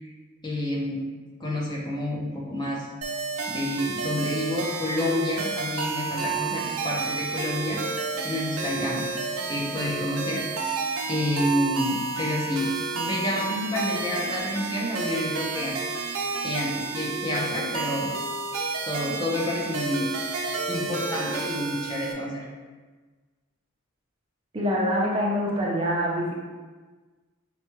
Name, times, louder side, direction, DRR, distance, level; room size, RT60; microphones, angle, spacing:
voice 1, 0.4-1.0 1.4-2.9 3.5-7.8 8.2-9.1 9.5-10.4 11.1-15.8 16.4-18.1 18.9-20.1 20.7-22.4, left 1 dB, 20° left, -4 dB, 0.6 m, -29 dB
sound 1, 3.0-22.1, right 4 dB, 85° right, 0.6 m, -31 dB
voice 2, 24.5-26.3, equal, 25° right, -4 dB, 0.6 m, -25 dB
5.5 x 2.3 x 3.0 m, 1.4 s
head